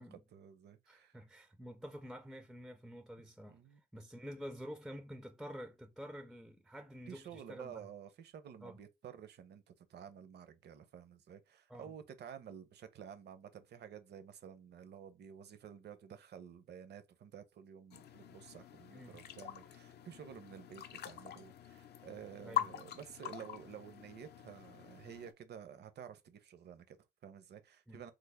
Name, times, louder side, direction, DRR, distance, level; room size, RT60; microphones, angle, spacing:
voice 1, 0.0-1.2 3.5-3.8 7.1-28.1, right 8 dB, 55° right, 0.6 m, -52 dB
voice 2, 0.9-7.9 8.6-8.8 11.7-11.9 18.9-19.2 22.4-22.7 27.9-28.0, equal, ahead, 0.4 m, -49 dB
sound 1, 17.9-25.3, left 12 dB, 55° left, 0.5 m, -44 dB
3.3 x 2.0 x 3.4 m
cardioid pair, 90°, 20 cm